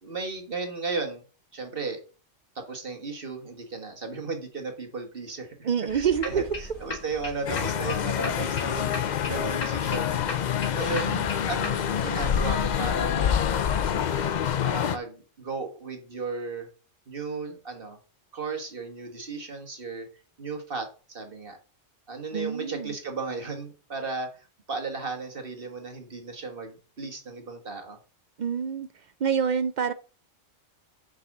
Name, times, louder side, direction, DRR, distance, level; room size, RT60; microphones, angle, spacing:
voice 1, 0.0-1.2 1.5-2.0 2.5-9.0 9.2-10.2 10.7-14.2 14.6-16.7 17.1-18.0 18.3-20.1 20.4-21.6 22.1-28.0, right 4 dB, 45° right, 4 dB, 1.8 m, -35 dB
voice 2, 5.6-6.4 10.9-11.2 22.3-22.9 28.4-28.9 29.2-29.9, right 7 dB, 65° right, 12 dB, 0.4 m, -27 dB
sound 1, 5.9-11.7, left 3 dB, 80° left, 2.1 m, -38 dB
sound 2, 7.5-15.0, left 8 dB, 55° left, 0.5 m, -26 dB
6.2 x 5.5 x 6.5 m, 0.37 s
omnidirectional pair, 1.3 m